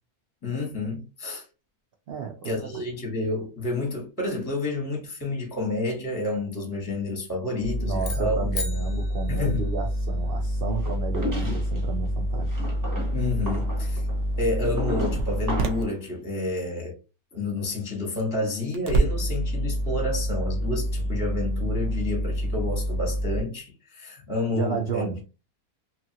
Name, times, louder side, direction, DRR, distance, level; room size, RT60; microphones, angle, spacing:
voice 1, 0.4-1.4 2.4-8.5 9.3-9.7 11.4-11.6 13.1-14.0 14.4-16.9 17.3-25.0, left 2 dB, 15° left, 0.7 m, -29 dB
voice 2, 2.1-2.7 7.8-12.6 24.5-25.2, right 5 dB, 80° right, 0.5 m, -32 dB
sound 1, 7.6-15.8 18.7-23.4, equal, 60° right, 0.8 m, -27 dB
sound 2, 8.0-10.3, left 3 dB, 75° left, 0.4 m, -37 dB
sound 3, 10.8-11.8 12.5-15.9, equal, 20° right, 0.5 m, -34 dB
2.8 x 2.4 x 2.7 m
omnidirectional pair, 1.6 m